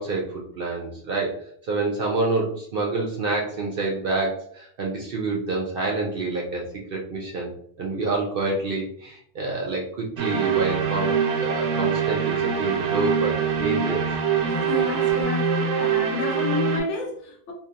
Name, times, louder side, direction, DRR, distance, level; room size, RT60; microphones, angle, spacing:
voice 1, 0.0-7.5 7.8-11.1 11.4-14.1, right 3 dB, 60° right, -2 dB, 0.6 m, -27 dB
sound 1, 10.2-16.8, right 6 dB, 85° right, 1.0 m, -24 dB
voice 2, 14.5-15.5 15.8-17.5, left 4 dB, 70° left, 1 dB, 1.0 m, -30 dB
2.8 x 2.4 x 2.5 m, 0.63 s
omnidirectional pair, 1.3 m